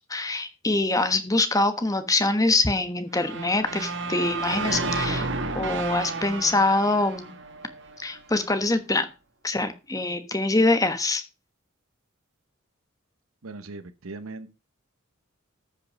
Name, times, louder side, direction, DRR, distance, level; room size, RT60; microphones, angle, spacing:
voice 1, 0.1-5.3 5.5-7.3 8.0-9.1 9.4-11.2, left 2 dB, 15° left, 1.3 m, -24 dB
sound 1, 3.2-8.2, right 3 dB, 60° right, 1.4 m, -31 dB
voice 2, 13.4-14.5, right 3 dB, 85° right, 1.0 m, -39 dB
13.5 x 5.6 x 5.3 m
head